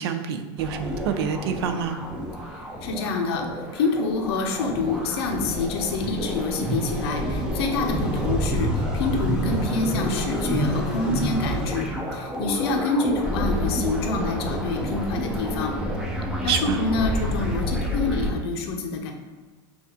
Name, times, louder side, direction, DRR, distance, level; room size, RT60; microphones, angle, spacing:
voice 1, 0.0-2.0 16.4-16.8, right 7 dB, 85° right, 8 dB, 0.4 m, -27 dB
sound 1, 0.6-18.3, equal, 5° right, 0.4 m, -28 dB
voice 2, 2.8-3.5 3.7-15.7 16.4-19.1, left 4 dB, 85° left, 4 dB, 0.6 m, -27 dB
5.7 x 2.4 x 2.8 m, 1.4 s
supercardioid pair, 165°, 13 cm